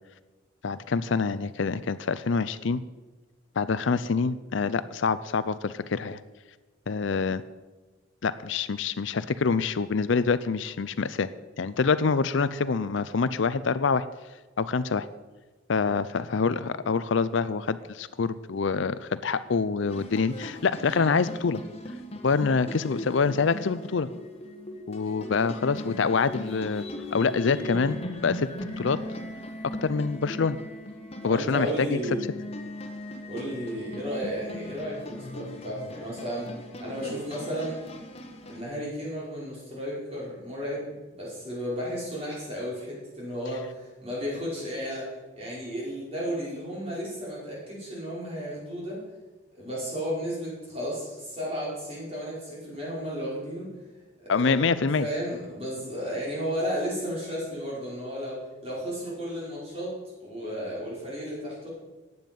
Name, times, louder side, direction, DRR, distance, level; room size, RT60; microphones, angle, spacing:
voice 1, 0.6-2.8 3.6-6.2 6.9-7.4 8.2-11.3 11.6-14.0 14.6-15.1 15.7-21.6 22.2-24.1 24.9-26.9 27.1-28.0 28.2-28.5 28.8-29.0 29.8-30.6 31.2-32.0 54.3-55.1, left 5 dB, 70° left, 15 dB, 0.5 m, -26 dB
sound 1, 19.9-38.6, left 1 dB, 30° left, 1.5 m, -39 dB
voice 2, 31.2-32.3 33.3-36.5 36.8-37.8 38.5-49.0 49.5-53.7 54.2-59.9 60.2-61.7, equal, 30° right, -6 dB, 5.3 m, -33 dB
15.0 x 9.5 x 5.4 m, 1.2 s
head